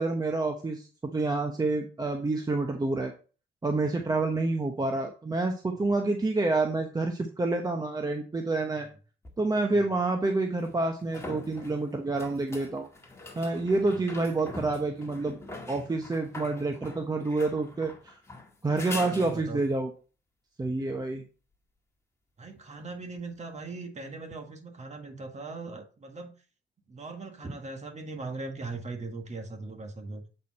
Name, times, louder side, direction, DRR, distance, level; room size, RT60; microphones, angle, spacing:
voice 1, 0.0-3.1 3.6-8.9 9.4-12.9 13.4-15.3 15.7-18.2 18.6-19.9 20.6-21.2, right 3 dB, 20° right, 4 dB, 0.9 m, -28 dB
sound 1, 9.2-9.3 10.6-19.8 23.2-23.3, left 2 dB, 15° left, 1.8 m, -43 dB
voice 2, 18.7-19.7 22.4-26.3 26.9-30.2, right 3 dB, 35° right, 5 dB, 1.7 m, -40 dB
8.2 x 4.4 x 4.2 m, 0.37 s
cardioid pair, 90°, 20 cm